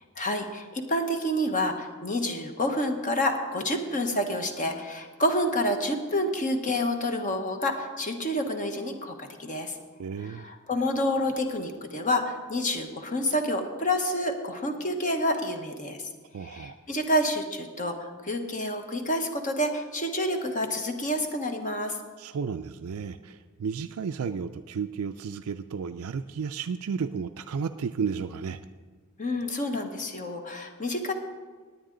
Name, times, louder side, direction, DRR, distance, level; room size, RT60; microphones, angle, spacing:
voice 1, 0.2-9.8 10.2-16.0 16.4-22.0 29.2-31.1, left 1 dB, 35° left, 5 dB, 1.1 m, -28 dB
voice 2, 10.0-10.5 16.3-16.8 22.2-28.6, right 6 dB, 75° right, 7 dB, 0.4 m, -33 dB
18.5 x 9.4 x 3.9 m, 1.5 s
head